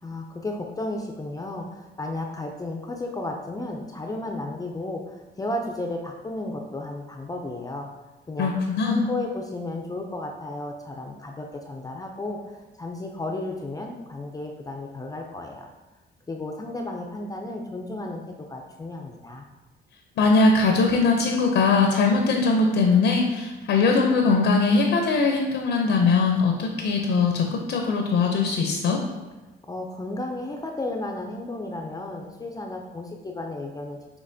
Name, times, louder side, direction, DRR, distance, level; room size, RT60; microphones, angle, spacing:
voice 1, 0.0-7.9 8.3-8.6 8.9-15.7 16.3-19.5 29.7-34.2, left 2 dB, 20° left, 1 dB, 0.4 m, -33 dB
voice 2, 8.4-9.0 20.2-29.0, left 4 dB, 70° left, 2 dB, 0.5 m, -21 dB
6.4 x 2.8 x 2.7 m, 1.2 s
cardioid pair, 90°, 20 cm